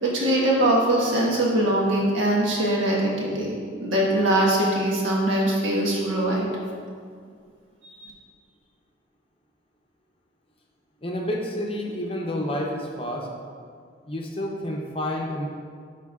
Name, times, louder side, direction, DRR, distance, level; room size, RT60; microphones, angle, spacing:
voice 1, 0.0-6.5 7.8-8.1, right 1 dB, 80° right, -4 dB, 1.4 m, -22 dB
voice 2, 11.0-13.3 14.0-15.5, left 1 dB, 30° left, 0 dB, 0.6 m, -29 dB
11.0 x 4.5 x 2.4 m, 2.1 s
head